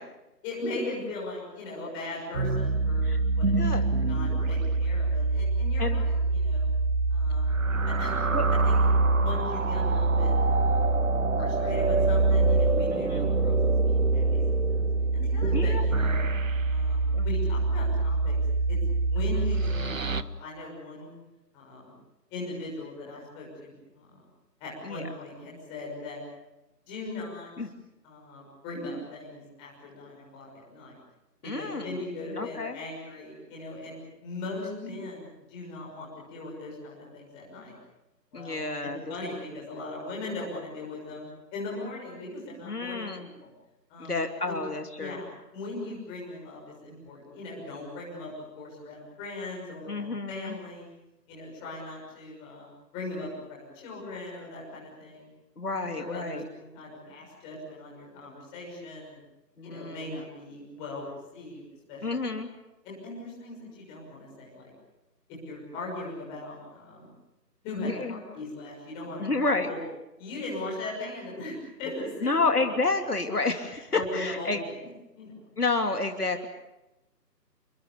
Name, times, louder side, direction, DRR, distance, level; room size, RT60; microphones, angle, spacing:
voice 1, 0.4-3.1 3.3-6.7 7.1-7.5 7.8-8.1 8.5-8.7 9.1-10.9 11.3-13.6 13.8-16.3 16.7-18.3 18.7-21.1 21.5-21.9 22.3-24.2 24.6-26.2 26.9-27.5 28.0-31.0 31.4-37.7 38.3-43.5 43.9-44.1 44.5-44.6 45.0-45.3 45.5-50.9 51.3-52.7 52.9-55.3 55.8-59.2 59.6-61.6 61.9-62.3 62.8-64.7 65.4-67.1 67.6-69.8 70.2-72.6 73.9-74.8 75.1-75.3, left 2 dB, 10° left, -3 dB, 6.2 m, -39 dB
sound 1, 2.3-20.2, right 3 dB, 50° right, 1.1 m, -25 dB
voice 2, 12.9-13.2 15.5-15.8 17.1-17.3 19.3-19.5 24.8-25.1 27.6-27.7 31.4-32.0 32.4-32.8 38.3-39.1 42.6-43.3 44.0-45.2 49.9-50.6 55.6-56.4 59.6-60.2 62.0-62.5 67.8-68.2 69.2-69.7 72.2-74.6 75.6-76.5, left 3 dB, 65° left, 5 dB, 3.0 m, -30 dB
29.0 x 23.5 x 6.9 m, 0.95 s
figure-of-eight pair, 160°, 50 cm